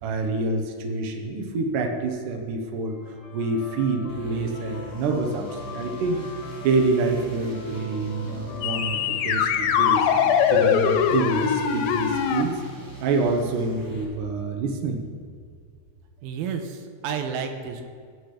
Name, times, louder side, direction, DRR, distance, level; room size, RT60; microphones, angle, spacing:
voice 1, 0.0-3.0 3.3-6.2 6.6-10.1 10.5-12.6 13.0-15.0, right 3 dB, 65° right, 3 dB, 2.5 m, -27 dB
sound 1, 2.9-9.8, left 5 dB, 60° left, 2.1 m, -43 dB
sound 2, 4.1-14.0, right 1 dB, 15° right, 0.7 m, -41 dB
sound 3, 8.6-12.4, left 7 dB, 80° left, 2.4 m, -22 dB
voice 2, 16.2-17.8, right 6 dB, 80° right, 6 dB, 2.7 m, -31 dB
17.5 x 6.0 x 5.1 m, 2.1 s
omnidirectional pair, 4.3 m